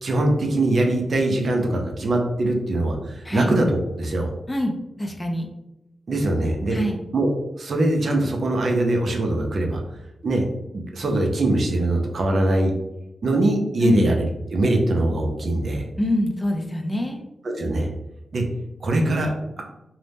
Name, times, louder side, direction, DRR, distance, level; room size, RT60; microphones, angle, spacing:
voice 1, 0.0-4.3 6.1-6.8 7.1-9.8 10.2-10.4 10.7-12.7 13.2-15.8 17.4-17.9 18.3-18.4 18.8-19.6, right 1 dB, 60° right, 2 dB, 0.5 m, -22 dB
voice 2, 5.0-5.5 6.7-7.0 13.8-14.1 16.0-17.2, left 1 dB, 15° left, 3 dB, 0.4 m, -24 dB
2.7 x 2.0 x 3.3 m, 0.89 s
cardioid pair, 85°, 0 cm